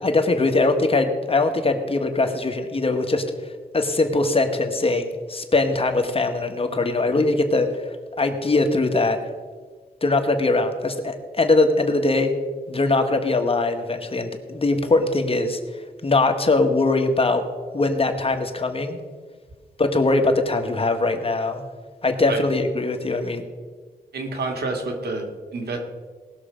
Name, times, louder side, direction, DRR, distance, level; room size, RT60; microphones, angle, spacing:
voice 1, 0.0-3.2 3.7-7.8 8.2-9.2 10.0-12.3 12.7-17.4 17.7-19.0 19.8-21.6 22.0-23.4, left 2 dB, 35° left, 5 dB, 1.4 m, -21 dB
voice 2, 24.1-25.8, right 3 dB, 85° right, 3 dB, 2.0 m, -28 dB
19.0 x 6.7 x 5.1 m, 1.4 s
wide cardioid pair, 85°, 16 cm